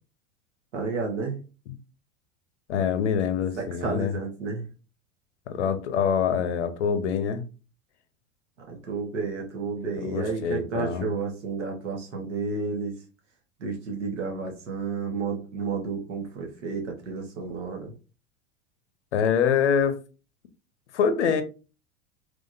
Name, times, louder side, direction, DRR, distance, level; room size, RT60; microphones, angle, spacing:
voice 1, 0.7-1.4 3.6-4.7 8.7-12.9 13.6-17.9, right 4 dB, 65° right, 1.3 m, -31 dB
voice 2, 2.7-4.1 5.5-7.4 10.0-11.1 19.1-20.0 20.9-21.4, left 7 dB, 60° left, 0.7 m, -25 dB
3.6 x 3.1 x 2.6 m
figure-of-eight pair, 85°, 38 cm